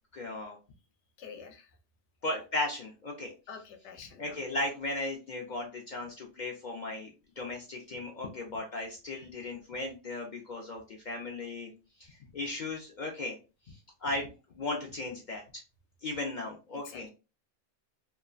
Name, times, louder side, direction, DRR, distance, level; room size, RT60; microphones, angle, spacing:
voice 1, 0.1-0.6 2.2-3.3 4.2-7.1 7.4-11.7 12.0-13.4 13.7-14.3 14.6-15.4 16.0-17.1, left 2 dB, 55° left, 0 dB, 0.5 m, -36 dB
voice 2, 1.2-1.7 3.5-4.4 16.7-17.1, left 6 dB, 80° left, 6 dB, 0.9 m, -47 dB
2.9 x 2.1 x 2.4 m, 0.31 s
omnidirectional pair, 1.2 m